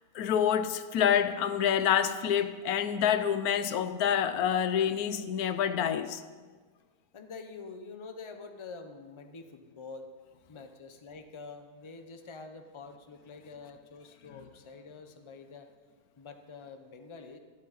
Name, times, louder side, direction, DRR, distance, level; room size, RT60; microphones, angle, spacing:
voice 1, 0.1-6.2, left 9 dB, 85° left, 1.1 m, -27 dB
voice 2, 7.1-10.1 10.5-15.7 16.2-17.4, left 4 dB, 25° left, 0.7 m, -46 dB
12.5 x 12.0 x 4.2 m
omnidirectional pair, 1.6 m